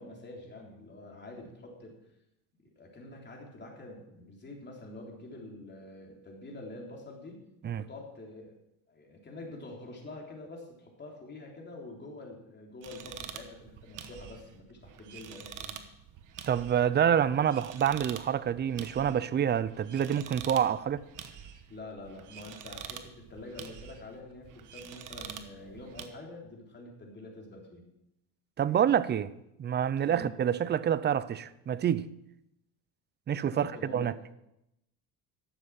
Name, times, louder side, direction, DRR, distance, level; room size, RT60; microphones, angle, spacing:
voice 1, 0.0-1.9 2.8-7.4 7.8-8.5 8.9-15.8 21.7-27.8 30.0-30.3 33.5-34.3, left 2 dB, 25° left, 3.6 m, -46 dB
sound 1, 12.8-26.1, right 8 dB, 50° right, 1.2 m, -46 dB
voice 2, 16.5-21.0 28.6-29.3 29.6-32.1 33.3-34.1, right 9 dB, 25° right, 0.5 m, -27 dB
11.5 x 7.7 x 6.0 m
supercardioid pair, 95°, 41 cm